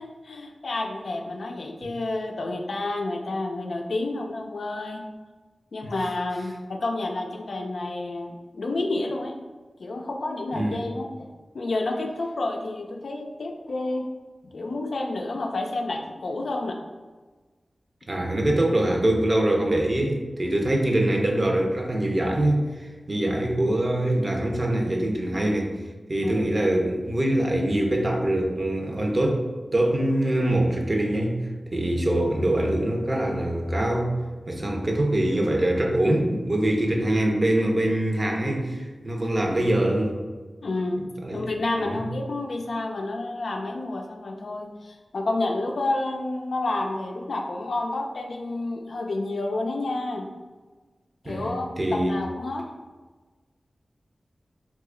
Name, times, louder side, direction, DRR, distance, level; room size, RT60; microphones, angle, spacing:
voice 1, 0.0-5.0 5.7-9.3 9.8-11.3 11.5-14.1 14.5-16.8 23.2-23.5 26.2-26.5 40.6-50.3 51.2-52.7, left 2 dB, 75° left, 2 dB, 0.4 m, -30 dB
voice 2, 18.1-25.8 26.1-31.4 31.7-34.1 34.5-40.2 41.2-41.5 41.8-42.0 51.2-52.1, right 1 dB, 40° right, 1 dB, 0.6 m, -24 dB
2.8 x 2.3 x 3.6 m, 1.3 s
cardioid pair, 45°, 0 cm